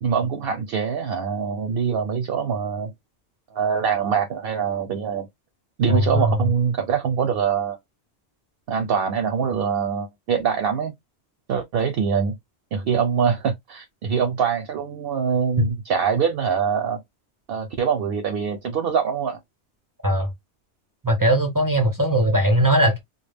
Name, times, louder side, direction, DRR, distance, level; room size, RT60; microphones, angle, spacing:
voice 1, 0.0-2.9 3.5-5.3 5.8-7.8 8.7-10.9 11.5-12.4 12.7-17.0 17.5-19.4, right 6 dB, 65° right, 0.7 m, -24 dB
voice 2, 5.9-6.4 15.6-15.7 20.0-20.3 21.0-23.0, right 1 dB, 30° right, 0.4 m, -19 dB
2.2 x 2.1 x 3.3 m
omnidirectional pair, 1.2 m